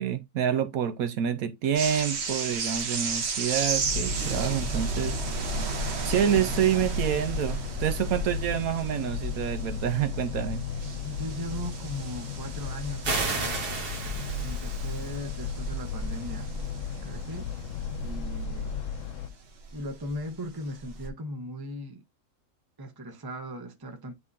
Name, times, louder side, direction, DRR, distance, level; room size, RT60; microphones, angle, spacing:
voice 1, 0.0-5.2 6.0-10.6, right 9 dB, 70° right, 1.0 m, -27 dB
sound 1, 1.7-20.3 20.7-21.1, right 3 dB, 45° right, 1.2 m, -34 dB
sound 2, 3.8-19.3, left 8 dB, 60° left, 0.9 m, -36 dB
voice 2, 11.0-13.7 14.4-16.5 17.0-17.6 18.0-18.8 19.7-22.0 22.8-24.1, equal, 20° right, 0.8 m, -38 dB
sound 3, 13.0-15.1, right 4 dB, 90° right, 1.8 m, -32 dB
9.7 x 3.6 x 2.7 m
omnidirectional pair, 1.6 m